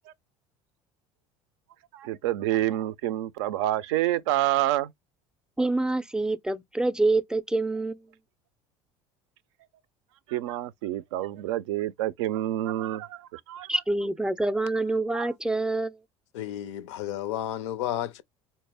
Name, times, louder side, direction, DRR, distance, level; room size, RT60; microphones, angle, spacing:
voice 1, 1.9-4.9 10.3-13.7 15.1-15.3, right 14 dB, 80° right, 0.4 m, -28 dB
voice 2, 5.6-8.1 13.7-16.0, right 2 dB, 5° right, 0.4 m, -26 dB
voice 3, 16.3-18.2, left 12 dB, 80° left, 0.4 m, -32 dB
4.1 x 2.0 x 3.3 m
hypercardioid pair, 75°, 15 cm